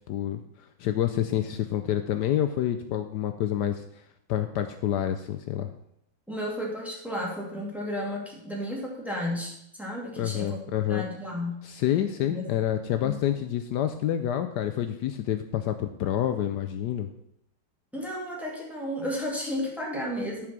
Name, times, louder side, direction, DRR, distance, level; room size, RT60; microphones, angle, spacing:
voice 1, 0.1-3.8 4.3-5.7 10.2-11.0 11.6-17.1, left 11 dB, 75° left, 8 dB, 1.2 m, -28 dB
voice 2, 6.3-10.6 10.9-11.7 12.3-12.5 13.0-13.2 17.9-20.5, equal, ahead, -3 dB, 2.3 m, -33 dB
11.0 x 4.9 x 6.0 m, 0.77 s
omnidirectional pair, 1.9 m